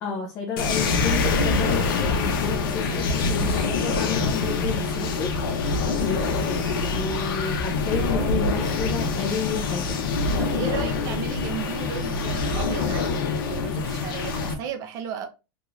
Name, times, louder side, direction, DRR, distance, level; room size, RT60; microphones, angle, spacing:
voice 1, 0.0-5.3 6.0-9.9, left 5 dB, 25° left, 0.4 m, -31 dB
sound 1, 0.6-14.5, left 4 dB, 70° left, 0.8 m, -25 dB
voice 2, 10.4-13.1 13.5-15.3, right 7 dB, 30° right, 0.5 m, -34 dB
3.0 x 2.4 x 3.0 m
supercardioid pair, 170°, 12 cm